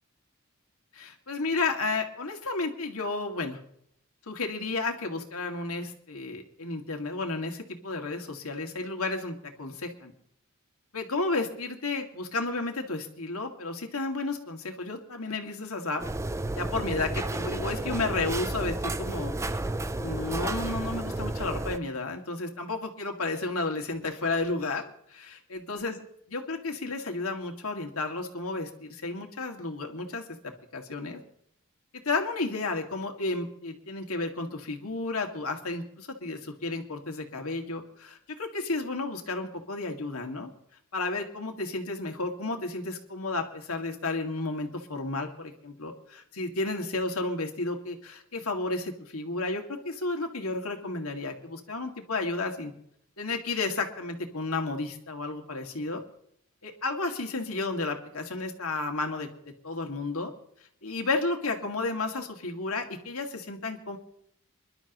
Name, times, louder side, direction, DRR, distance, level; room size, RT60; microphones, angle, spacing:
voice 1, 0.9-3.6 4.3-10.1 10.9-16.0 16.5-19.6 20.0-25.2 25.5-26.0 26.3-30.2 30.7-31.2 32.1-40.5 40.9-52.7 53.2-56.0 56.6-59.3 59.6-60.3 60.8-64.0, left 3 dB, 85° left, 3 dB, 2.2 m, -32 dB
sound 1, 16.0-21.8, right 2 dB, 15° right, 0.4 m, -32 dB
26.5 x 12.0 x 3.1 m, 0.69 s
head